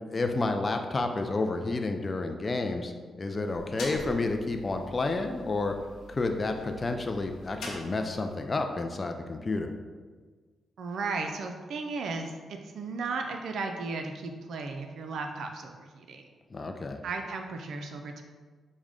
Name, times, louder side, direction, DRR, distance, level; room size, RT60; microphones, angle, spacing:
voice 1, 0.1-2.9 3.2-5.7 6.1-9.8 16.5-17.0, left 3 dB, 35° left, 5 dB, 0.3 m, -30 dB
sound 1, 3.4-8.5, left 2 dB, 80° left, 0.7 m, -44 dB
voice 2, 10.8-16.2 17.0-18.2, right 3 dB, 75° right, 4 dB, 0.3 m, -35 dB
4.7 x 2.1 x 3.7 m, 1.4 s
cardioid pair, 65°, 0 cm